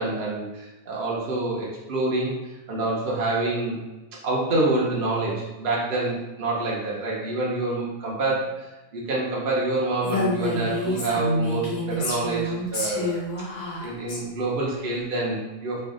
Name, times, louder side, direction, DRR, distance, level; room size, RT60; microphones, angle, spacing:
voice 1, 0.0-2.3 2.7-3.8 4.2-13.2 13.8-15.8, right 2 dB, 45° right, -5 dB, 0.9 m, -27 dB
Female speech woman speaking, 10.0-14.2, left 1 dB, 70° left, 1.3 m, -28 dB
3.2 x 2.5 x 3.7 m, 1.1 s
omnidirectional pair, 1.4 m